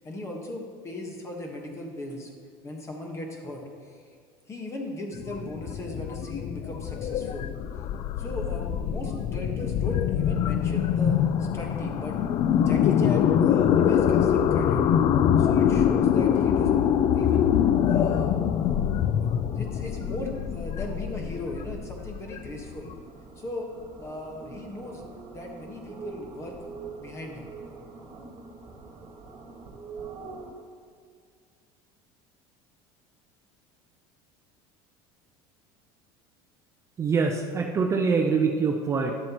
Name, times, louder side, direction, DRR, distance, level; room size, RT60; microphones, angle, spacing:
voice 1, 0.0-2.3 2.6-4.0 4.5-7.5 8.2-12.2 12.6-14.8 15.4-17.5 17.9-18.3 19.2-22.9 23.4-23.7 24.0-25.0 25.3-26.6 27.0-27.5, left 1 dB, 25° left, 1 dB, 1.3 m, -37 dB
sound 1, 5.1-22.9, left 9 dB, 45° left, 0.4 m, -24 dB
sound 2, 15.8-30.5, right 4 dB, 40° right, 1.6 m, -45 dB
voice 2, 37.0-39.1, right 5 dB, 25° right, 2 dB, 0.6 m, -24 dB
11.0 x 7.4 x 3.0 m, 2.1 s
cardioid pair, 135°, 12 cm